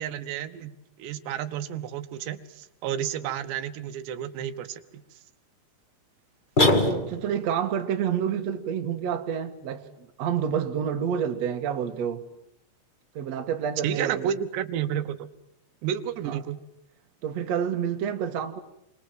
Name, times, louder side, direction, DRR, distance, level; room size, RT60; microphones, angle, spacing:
voice 1, 0.0-4.8 13.8-15.3 15.8-16.6, right 10 dB, 85° right, 3.4 m, -31 dB
sound 1, 6.6-7.5, left 2 dB, 65° left, 0.4 m, -22 dB
voice 2, 6.8-12.2 13.1-14.3 16.2-16.4 17.2-18.6, right 8 dB, 50° right, 2.3 m, -28 dB
30.0 x 24.5 x 7.7 m
omnidirectional pair, 4.8 m